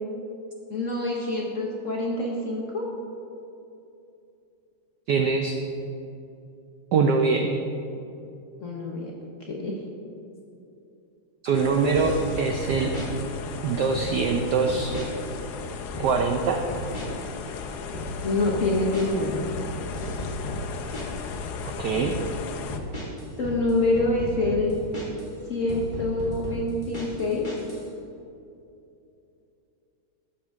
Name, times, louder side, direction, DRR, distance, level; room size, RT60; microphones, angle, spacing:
voice 1, 0.7-2.9 8.6-9.1 9.5-9.7 18.2-19.4 23.4-24.7 25.5-27.4, left 2 dB, 50° left, -2 dB, 1.0 m, -26 dB
voice 2, 5.1-5.6 6.9-7.5 11.4-12.9 13.6-14.9 16.0-16.6 21.6-22.1, right 5 dB, 80° right, 4 dB, 0.9 m, -23 dB
sound 1, 11.5-22.8, left 5 dB, 75° left, 0.9 m, -36 dB
sound 2, 11.9-12.4 12.7-13.1 13.7-14.3 14.7-15.3 15.6-16.1 16.7-17.3 17.6-21.3 21.7-22.1 22.7-25.3 25.7-27.8, left 1 dB, 20° left, 2.3 m, -35 dB
13.0 x 7.5 x 3.6 m, 2.7 s
omnidirectional pair, 2.4 m